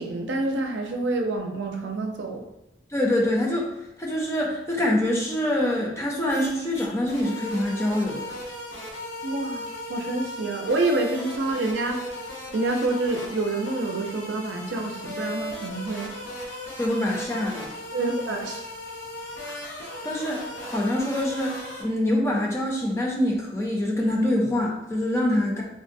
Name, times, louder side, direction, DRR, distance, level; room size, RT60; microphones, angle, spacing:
voice 1, 0.0-2.4 9.2-9.6 9.9-12.0 12.5-16.1 17.9-18.6, right 2 dB, 80° right, 2 dB, 0.5 m, -27 dB
voice 2, 2.9-3.7 4.0-8.3 16.8-17.7 20.0-25.6, left 1 dB, 15° left, -2 dB, 0.5 m, -25 dB
sound 1, 6.3-6.5 6.7-21.8, left 1 dB, 90° left, 0.7 m, -37 dB
3.6 x 2.0 x 2.5 m, 0.94 s
head